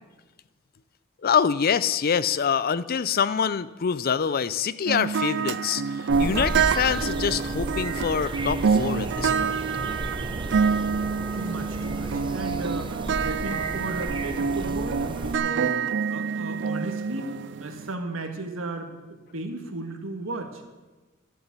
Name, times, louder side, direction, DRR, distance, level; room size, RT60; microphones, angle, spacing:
voice 1, 1.2-9.6, left 7 dB, 50° left, 16 dB, 0.5 m, -25 dB
sound 1, 4.9-17.9, right 6 dB, 60° right, 0.4 m, -27 dB
UK Deciduous Wood in early Spring with Cuckoo, 6.1-15.4, right 1 dB, 25° right, 0.8 m, -33 dB
voice 2, 10.9-12.9 13.2-15.8 16.1-17.3 17.6-20.6, right 2 dB, 85° right, 5 dB, 1.7 m, -35 dB
12.0 x 7.2 x 8.2 m, 1.2 s
head